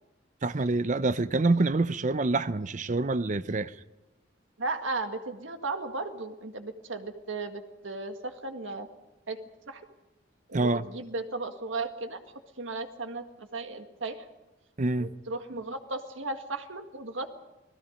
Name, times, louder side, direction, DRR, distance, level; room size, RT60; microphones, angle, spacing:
voice 1, 0.4-3.7 10.5-10.8 14.8-15.1, right 2 dB, 40° right, 0.6 m, -26 dB
voice 2, 4.6-8.9 9.3-9.4 9.7-9.8 10.5-12.2 12.6-14.3 15.0-17.3, right 3 dB, 85° right, 1.9 m, -35 dB
29.0 x 19.5 x 5.2 m
head